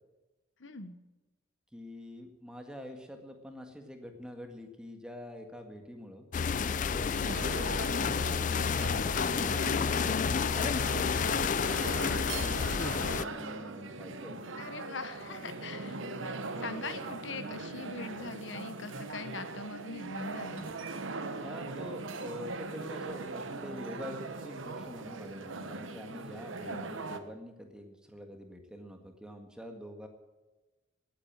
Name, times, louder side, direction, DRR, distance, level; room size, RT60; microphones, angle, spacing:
voice 1, 0.6-1.0 7.1-7.5 14.6-20.7 26.6-26.9, left 4 dB, 70° left, 11 dB, 1.1 m, -42 dB
voice 2, 1.7-6.3 6.6-9.0 9.4-14.4 21.1-30.1, equal, 5° right, 4 dB, 1.7 m, -46 dB
sound 1, 6.3-13.2, left 6 dB, 40° left, 0.4 m, -30 dB
sound 2, 7.3-27.2, right 3 dB, 80° right, 1.1 m, -40 dB
18.0 x 8.8 x 7.5 m, 1.2 s
head